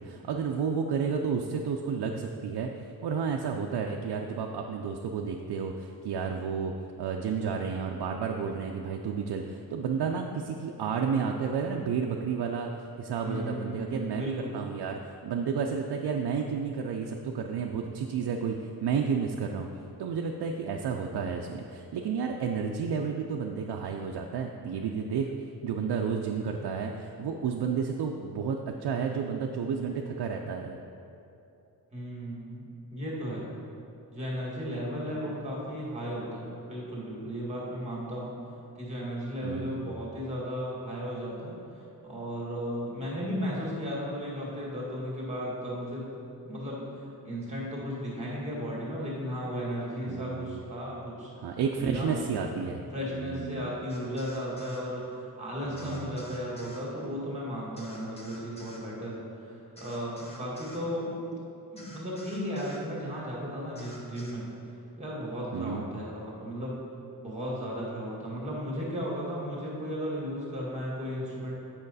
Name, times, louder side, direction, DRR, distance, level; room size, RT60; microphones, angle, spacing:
voice 1, 0.0-2.7 3.0-6.7 7.0-12.7 13.0-19.7 20.0-25.3 25.6-30.8 35.2-35.3 39.4-39.9 50.1-50.6 51.4-52.8 53.1-53.6 55.7-56.2 61.3-61.4 65.5-65.8, right 6 dB, 90° right, 2 dB, 0.5 m, -31 dB
voice 2, 13.2-14.5 31.9-33.5 34.1-38.3 38.8-41.6 42.0-46.0 46.4-46.9 47.2-52.3 52.9-61.1 61.7-64.5 65.0-66.8 67.2-71.5, equal, 15° right, -5 dB, 1.9 m, -35 dB
sound 1, 53.9-54.8 55.8-56.8 57.8-58.8 59.8-60.8 61.8-62.8 63.7-64.3, equal, 15° left, 1.0 m, -49 dB
8.8 x 5.8 x 4.0 m, 2.8 s
wide cardioid pair, 165°, 38 cm